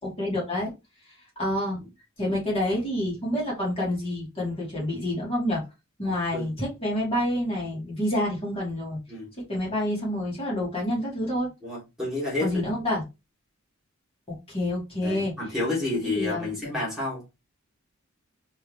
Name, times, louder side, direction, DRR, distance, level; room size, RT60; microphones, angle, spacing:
voice 1, 0.0-0.7 1.4-1.8 2.2-5.6 6.0-9.0 9.5-11.5 12.4-13.0 14.3-15.3 16.0-16.5, left 1 dB, 30° left, 2.7 m, -28 dB
voice 2, 11.6-12.6 15.0-17.2, left 2 dB, ahead, 2.3 m, -30 dB
4.5 x 3.3 x 3.0 m
head